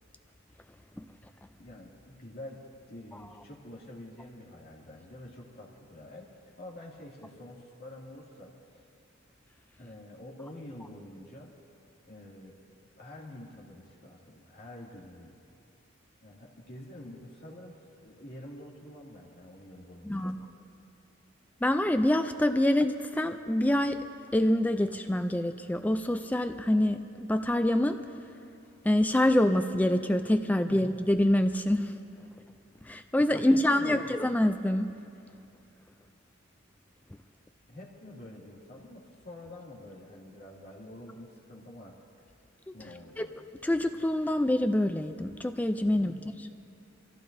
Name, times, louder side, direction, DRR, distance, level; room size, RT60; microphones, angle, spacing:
voice 1, 1.6-2.6 2.9-6.3 6.6-8.5 9.8-11.5 12.1-12.5 13.0-15.3 16.2-17.7 18.0-20.3 30.7-30.9 32.8-34.2 37.7-41.9 42.7-43.3 45.9-46.3, left 1 dB, 50° left, -3 dB, 2.3 m, -47 dB
voice 2, 20.0-20.4 21.6-24.0 24.3-28.0 28.8-31.9 32.8-34.9 42.7-42.8 43.2-43.3 43.6-46.2, left 1 dB, 10° left, 8 dB, 0.3 m, -26 dB
25.5 x 15.5 x 2.6 m, 2.6 s
head